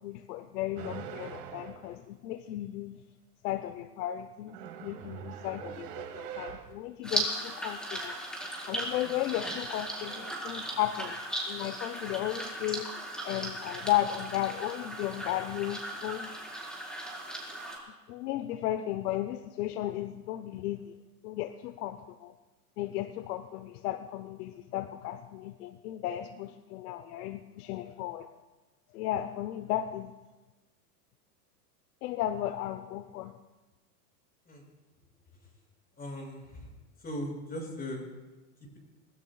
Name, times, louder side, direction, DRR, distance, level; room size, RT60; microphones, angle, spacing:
voice 1, 0.0-3.0 3.4-8.2 8.7-11.2 11.5-12.9 13.2-16.3 18.1-20.9 21.2-22.3 22.8-28.3 28.9-30.1 32.0-33.3, left 13 dB, 65° left, 11 dB, 0.8 m, -34 dB
sound 1, 0.8-2.0 4.4-6.8 8.9-9.3 9.7-10.3, right 9 dB, 45° right, 1.9 m, -43 dB
sound 2, 7.0-17.8, right 1 dB, ahead, 4.8 m, -37 dB
voice 2, 36.0-36.7 37.0-38.0, left 1 dB, 20° left, 0 dB, 6.2 m, -38 dB
27.0 x 20.0 x 2.4 m, 1.2 s
hypercardioid pair, 110°, 49 cm